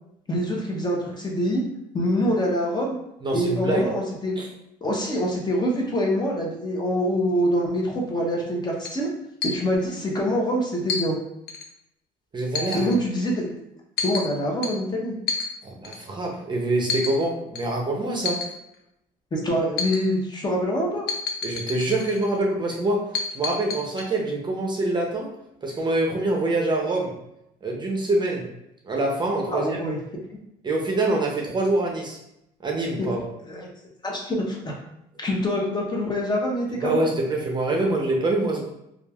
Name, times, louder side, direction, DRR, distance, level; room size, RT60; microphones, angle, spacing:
voice 1, 0.3-1.6 1.9-3.0 3.3-4.4 4.8-9.1 9.4-11.1 12.7-13.5 14.0-15.1 19.3-21.1 29.5-30.2 33.0-33.1 33.5-33.7 34.0-34.7 35.2-37.0, equal, 25° left, -1 dB, 0.7 m, -25 dB
voice 2, 3.2-3.8 4.4-4.5 12.3-12.9 15.6-18.4 21.4-23.0 23.3-25.3 25.6-27.1 27.6-28.4 28.8-29.8 30.6-32.2 32.6-33.2 36.8-38.6, right 2 dB, 25° right, 0 dB, 0.5 m, -25 dB
sound 1, 8.8-8.9 9.4-9.6 10.9-11.1 11.5-11.7 12.6-13.0 14.0-14.3 14.6-14.7 15.3-15.5 15.8-16.0 16.9-17.2 17.6-17.7 18.3-18.5 19.8-20.0 21.1-22.4 23.1-24.0, left 5 dB, 75° left, 0.5 m, -28 dB
3.0 x 2.3 x 2.3 m, 0.82 s
cardioid pair, 110°, 17 cm